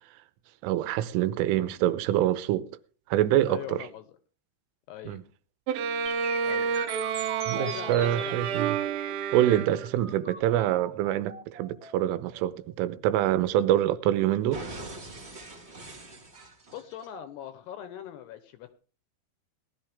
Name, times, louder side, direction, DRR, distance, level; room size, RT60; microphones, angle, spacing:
voice 1, 0.6-2.7 3.1-3.8 5.1-5.2 7.5-8.8 9.3-14.6, right 12 dB, 90° right, 3.4 m, -25 dB
voice 2, 3.5-4.1 4.9-5.2 6.4-6.9 7.6-8.7 10.5-10.7 16.7-18.7, left 10 dB, 75° left, 2.6 m, -41 dB
Bowed string instrument, 5.7-10.1, right 7 dB, 75° right, 2.8 m, -30 dB
sound 1, 6.0-14.0 14.5-17.1, right 3 dB, 50° right, 0.7 m, -42 dB
19.0 x 12.0 x 3.6 m
omnidirectional pair, 5.6 m